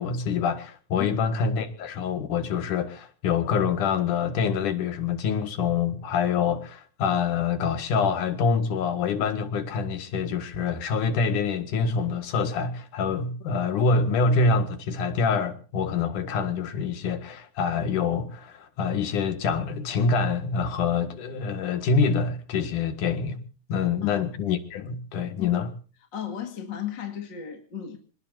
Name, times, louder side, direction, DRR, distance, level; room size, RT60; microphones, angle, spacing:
voice 1, 0.0-23.4 23.7-25.7, left 5 dB, 85° left, 3.3 m, -26 dB
voice 2, 26.1-28.0, left 9 dB, 40° left, 2.4 m, -34 dB
26.5 x 19.5 x 2.7 m
omnidirectional pair, 3.5 m